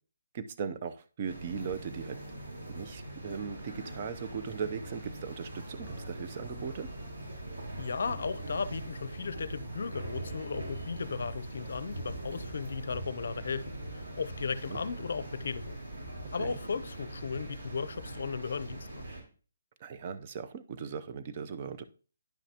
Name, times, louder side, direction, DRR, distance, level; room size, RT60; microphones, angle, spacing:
voice 1, 0.3-2.2 2.7-6.9 14.7-14.8 16.4-16.6 19.8-21.8, right 6 dB, 35° right, 0.6 m, -38 dB
sound 1, 1.3-19.2, right 1 dB, 75° right, 4.1 m, -42 dB
voice 2, 7.8-15.8 16.3-19.0, left 5 dB, 65° left, 0.6 m, -36 dB
10.0 x 5.8 x 2.9 m
hypercardioid pair, 165°, 0 cm